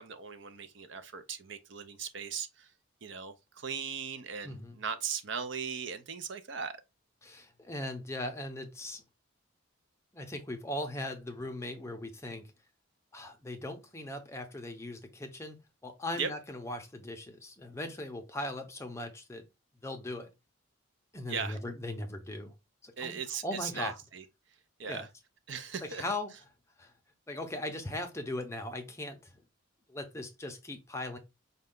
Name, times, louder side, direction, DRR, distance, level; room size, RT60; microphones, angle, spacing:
voice 1, 0.0-2.7 3.0-6.8 16.2-16.3 21.3-21.6 23.0-24.2 24.8-25.1 25.5-26.0, right 6 dB, 60° right, 0.6 m, -38 dB
voice 2, 4.4-4.8 7.2-9.0 10.1-12.5 13.1-15.6 15.8-19.5 19.8-20.3 21.1-22.5 22.8-24.0 24.8-25.0 25.8-26.3 26.8-26.9 27.3-29.3 29.9-31.2, left 1 dB, 15° left, 0.6 m, -39 dB
5.3 x 2.3 x 3.6 m
head